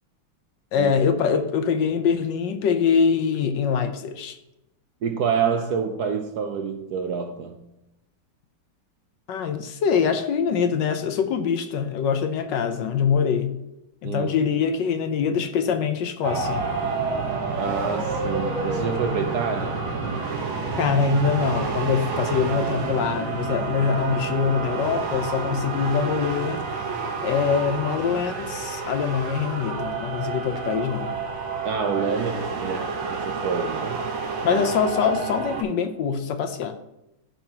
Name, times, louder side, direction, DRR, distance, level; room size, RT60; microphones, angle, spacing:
voice 1, 0.7-4.4 9.3-13.6 14.0-16.6 20.8-26.6 27.2-31.2 34.4-36.8, left 6 dB, 70° left, 1.2 m, -24 dB
voice 2, 5.0-7.6 14.0-14.3 17.5-19.9 31.6-34.0 34.4-34.6, right 6 dB, 65° right, 1.0 m, -27 dB
sound 1, 16.2-35.6, right 4 dB, 90° right, 2.0 m, -29 dB
14.5 x 5.8 x 2.9 m
omnidirectional pair, 2.2 m